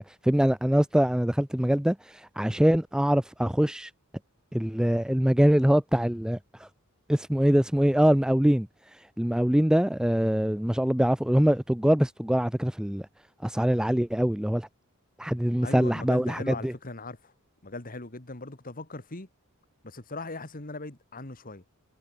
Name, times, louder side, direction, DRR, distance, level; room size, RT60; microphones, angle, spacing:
voice 1, 0.0-3.9 4.5-6.7 7.1-13.1 13.4-14.7 15.2-16.7, equal, 5° right, 0.5 m, -24 dB
voice 2, 15.6-17.3 17.6-19.3 19.8-21.6, left 2 dB, 40° left, 2.2 m, -39 dB
head